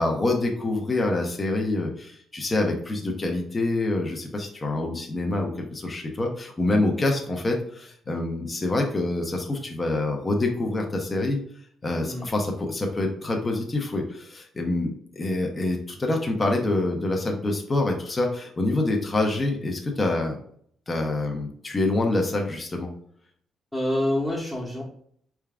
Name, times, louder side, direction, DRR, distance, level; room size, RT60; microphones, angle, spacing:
voice 1, 0.0-11.4 11.8-20.4 20.9-22.9, left 2 dB, 25° left, 1 dB, 0.8 m, -26 dB
voice 2, 23.7-24.8, left 1 dB, 5° left, -6 dB, 1.1 m, -26 dB
4.5 x 3.5 x 2.4 m, 0.62 s
cardioid pair, 90°, 0 cm